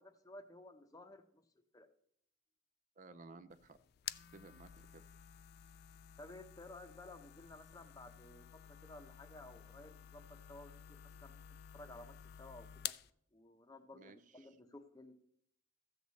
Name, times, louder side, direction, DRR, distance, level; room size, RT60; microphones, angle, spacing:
voice 1, 0.0-1.4 1.7-1.9 6.2-11.4 11.7-12.9 13.3-15.1, left 2 dB, 20° left, 8 dB, 0.7 m, -55 dB
voice 2, 3.0-3.8 4.3-5.1 13.9-14.5, right 3 dB, 40° right, 12 dB, 0.5 m, -57 dB
sound 1, 3.5-13.1, left 11 dB, 50° left, 0.3 m, -51 dB
14.0 x 7.9 x 4.1 m, 0.70 s
head